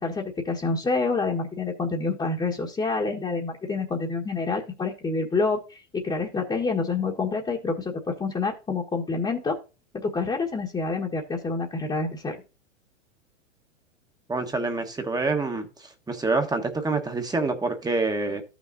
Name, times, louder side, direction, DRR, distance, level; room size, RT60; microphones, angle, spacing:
voice 1, 0.0-9.6 9.9-12.4, left 4 dB, 15° left, -2 dB, 1.4 m, -27 dB
voice 2, 14.3-15.7 16.1-18.4, right 3 dB, 10° right, 5 dB, 1.3 m, -26 dB
14.0 x 6.2 x 2.7 m, 0.31 s
hypercardioid pair, 115°, 38 cm